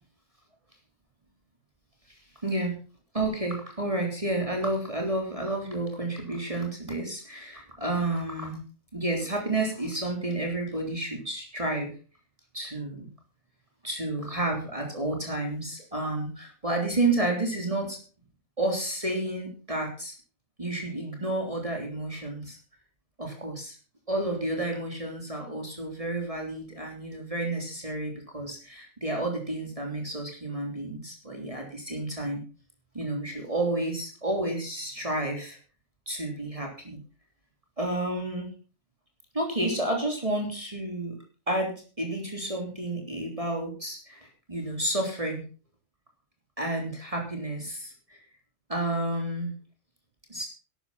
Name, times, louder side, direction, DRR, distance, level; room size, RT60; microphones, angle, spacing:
voice 1, 2.4-2.8 3.1-8.6 8.9-11.9 12.5-13.1 13.8-18.0 18.6-20.1 20.6-22.6 23.2-23.8 24.1-32.4 32.9-35.6 36.1-37.0 37.8-38.5 39.3-41.1 41.5-45.4 46.6-48.2 48.7-49.5 50.3-50.5, right 2 dB, 25° right, 1 dB, 3.6 m, -30 dB
12.5 x 11.5 x 5.7 m, 0.38 s
omnidirectional pair, 1.4 m